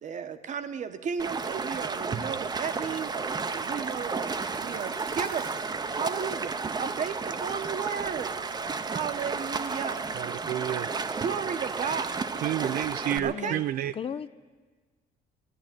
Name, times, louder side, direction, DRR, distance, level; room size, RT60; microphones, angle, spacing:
voice 1, 0.0-5.7 5.9-8.3 8.8-10.0 11.2-12.3 13.2-13.6, right 7 dB, 45° right, 10 dB, 1.0 m, -34 dB
Stream, 1.2-13.2, right 4 dB, 25° right, 0.7 m, -32 dB
sound 1, 1.2-10.0, right 5 dB, 85° right, 2.7 m, -56 dB
voice 2, 10.1-10.9 12.3-13.9, right 12 dB, 60° right, 13 dB, 0.4 m, -30 dB
voice 3, 13.1-13.6 13.9-14.3, left 8 dB, 35° left, 14 dB, 0.4 m, -36 dB
14.0 x 11.0 x 9.0 m, 1.4 s
cardioid pair, 110°, 17 cm